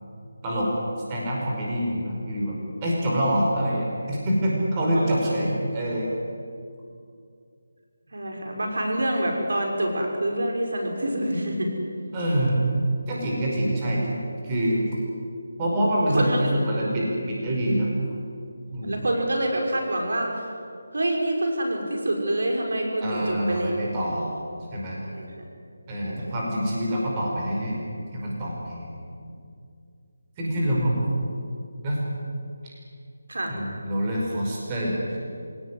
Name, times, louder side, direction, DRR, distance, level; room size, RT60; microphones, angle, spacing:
voice 1, 1.1-6.1 12.1-12.6 13.1-14.2 14.4-14.9 15.6-17.9 18.7-19.0 23.0-24.3 24.7-25.0 25.9-27.8 28.1-28.9 30.4-31.3 31.8-32.0 33.5-35.2, equal, 20° right, -4 dB, 5.3 m, -26 dB
voice 2, 4.9-5.3 8.1-11.7 16.1-16.5 18.8-20.5 20.9-24.0 25.1-25.4 26.0-26.2 33.3-33.6, right 1 dB, 75° right, 2 dB, 6.0 m, -27 dB
25.5 x 18.0 x 9.8 m, 2.4 s
figure-of-eight pair, 170°, 0 cm